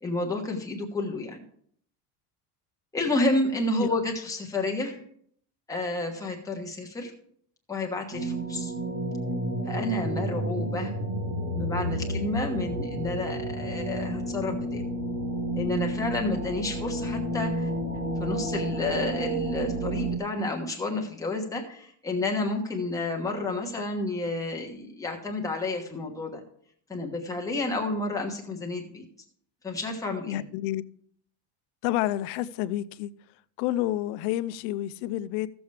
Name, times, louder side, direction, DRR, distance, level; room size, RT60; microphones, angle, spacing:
voice 1, 0.0-1.4 2.9-5.0 5.7-7.1 7.7-8.7 9.6-10.9 11.5-14.8 15.5-17.7 18.2-26.4 26.9-29.0 29.6-30.4, left 2 dB, 10° left, 1.1 m, -30 dB
sound 1, 8.1-20.2, right 1 dB, 35° right, 1.8 m, -31 dB
voice 2, 30.3-30.8 31.8-33.1 33.6-35.5, left 14 dB, 70° left, 0.6 m, -29 dB
15.0 x 7.0 x 3.3 m
cardioid pair, 180°, 43 cm